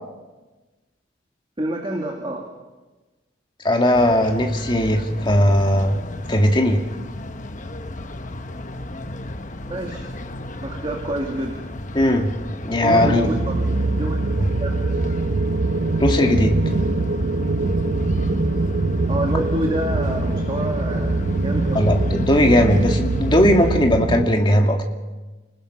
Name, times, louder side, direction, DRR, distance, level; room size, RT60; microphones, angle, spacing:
voice 1, 1.6-2.5 9.7-10.1 10.6-11.7 12.8-14.2 14.6-14.7 19.1-21.9, right 1 dB, 30° right, 1 dB, 2.3 m, -28 dB
voice 2, 3.6-6.0 6.3-6.8 11.9-12.3 12.6-13.3 14.4-14.5 16.0-16.6 21.7-24.9, left 1 dB, 25° left, 2 dB, 2.2 m, -18 dB
sound 1, 3.9-23.8, left 1 dB, 40° left, 1.1 m, -32 dB
sound 2, 12.9-24.3, right 3 dB, 60° right, 0.7 m, -23 dB
30.0 x 19.5 x 5.7 m, 1.2 s
head